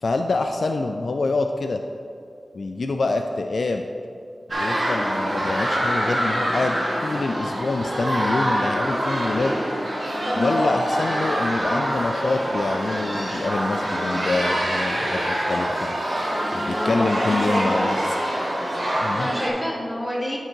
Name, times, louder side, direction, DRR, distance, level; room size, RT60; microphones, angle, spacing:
voice 1, 0.0-1.8 2.5-3.9 4.6-9.6 10.4-15.9 16.5-18.0 19.0-19.3, left 3 dB, 70° left, 5 dB, 0.4 m, -26 dB
sound 1, 4.5-19.5, equal, 45° right, 1.6 m, -25 dB
voice 2, 10.2-10.7 11.6-11.9 16.3-17.9 19.2-20.4, equal, 15° left, -5 dB, 1.9 m, -27 dB
11.5 x 3.8 x 4.5 m, 2.4 s
wide cardioid pair, 80°, 0 cm